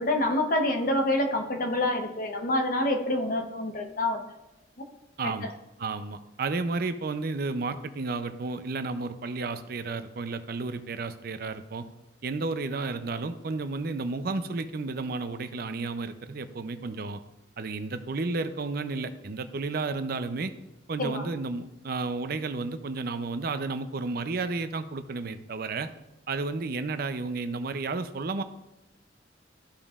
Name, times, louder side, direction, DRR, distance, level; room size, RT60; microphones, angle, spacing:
voice 1, 0.0-4.2 21.0-21.2, left 1 dB, 45° left, 3 dB, 0.9 m, -27 dB
voice 2, 5.2-5.5 5.8-11.9 12.2-17.2 17.6-20.5 20.9-25.9 26.3-28.4, right 3 dB, 55° right, 10 dB, 0.5 m, -32 dB
13.0 x 5.3 x 2.4 m, 0.96 s
head